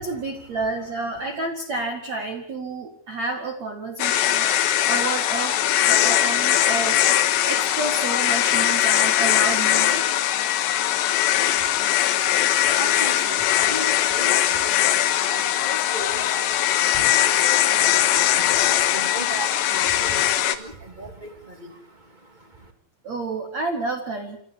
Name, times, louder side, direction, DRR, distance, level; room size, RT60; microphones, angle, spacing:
voice 1, 0.0-4.5 4.9-5.6 5.9-7.1 7.4-10.1 23.0-24.4, right 3 dB, 45° right, 3 dB, 2.5 m, -30 dB
sound 1, 4.0-20.6, left 12 dB, 75° left, 3.3 m, -21 dB
voice 2, 11.3-22.7, right 2 dB, 15° right, 5 dB, 1.7 m, -39 dB
28.0 x 14.0 x 8.4 m, 0.64 s
omnidirectional pair, 5.4 m